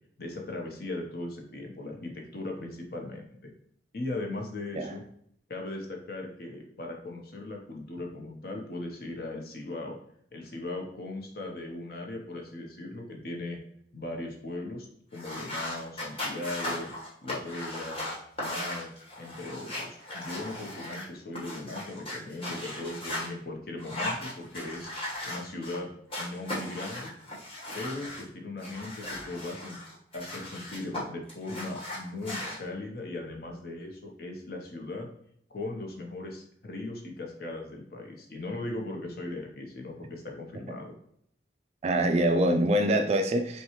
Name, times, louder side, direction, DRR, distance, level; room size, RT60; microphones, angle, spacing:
voice 1, 0.2-3.5 3.9-5.0 5.5-10.0 10.3-13.6 13.9-14.9 15.1-16.9 17.2-18.0 18.4-18.9 19.2-24.9 25.3-25.9 26.2-27.1 27.7-29.8 30.1-35.1 35.5-40.9, left 2 dB, 55° left, 0.8 m, -38 dB
sound 1, 15.1-23.3 23.8-25.8 26.1-28.2 28.6-31.0 31.3-32.6, left 1 dB, 30° left, 1.3 m, -37 dB
voice 2, 41.8-43.6, right 1 dB, 35° right, 0.3 m, -24 dB
5.4 x 2.3 x 3.0 m
head